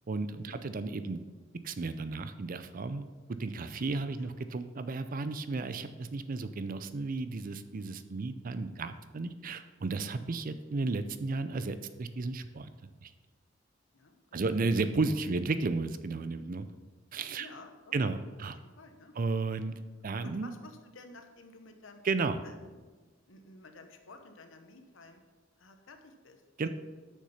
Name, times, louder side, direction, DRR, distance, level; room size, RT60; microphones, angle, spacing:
voice 1, 0.1-1.2 1.6-3.1 3.4-12.7 13.0-13.1 14.3-16.7 17.1-17.5 17.9-18.6 19.2-19.7 20.0-20.5 22.0-22.4 26.6-26.7, right 3 dB, 45° right, 11 dB, 0.5 m, -33 dB
voice 2, 13.9-14.6 15.3-15.4 17.3-18.0 18.6-19.1 20.2-22.0 22.4-22.8 23.3-25.2 25.6-26.4, left 2 dB, 85° left, 6 dB, 0.9 m, -52 dB
6.6 x 6.4 x 5.7 m, 1.3 s
head